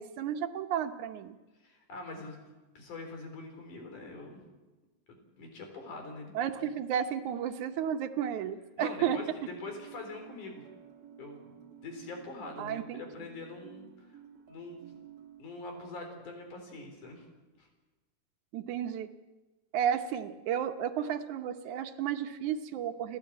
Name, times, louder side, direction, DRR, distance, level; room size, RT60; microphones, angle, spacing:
voice 1, 0.0-1.4 6.3-9.2 12.6-13.0 18.5-19.1 19.7-23.2, right 9 dB, 75° right, 7 dB, 2.5 m, -32 dB
voice 2, 1.6-2.4 2.8-4.4 5.1-6.3 6.6-6.7 8.8-10.7 11.2-11.6 11.8-14.2 14.5-15.0 15.4-17.3 17.6-17.7, left 3 dB, 80° left, 4 dB, 5.5 m, -44 dB
sound 1, 9.4-15.4, right 9 dB, 60° right, 1.7 m, -52 dB
29.5 x 11.5 x 8.8 m, 1.2 s
omnidirectional pair, 3.5 m